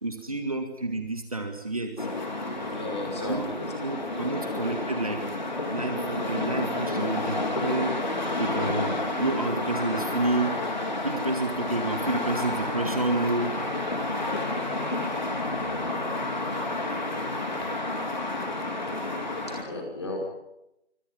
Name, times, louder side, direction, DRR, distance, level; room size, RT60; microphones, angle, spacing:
voice 1, 0.0-2.1 3.2-3.5 3.8-5.2 5.7-7.9 8.4-10.5 11.0-13.5, right 2 dB, 30° right, 5 dB, 2.0 m, -29 dB
sound 1, 2.0-19.6, left 2 dB, 40° left, 4.1 m, -30 dB
voice 2, 2.7-3.7 4.2-4.4 16.5-16.6 19.5-20.2, left 2 dB, 25° left, 0 dB, 5.4 m, -35 dB
27.5 x 24.5 x 5.8 m, 0.83 s
figure-of-eight pair, 165°, 34 cm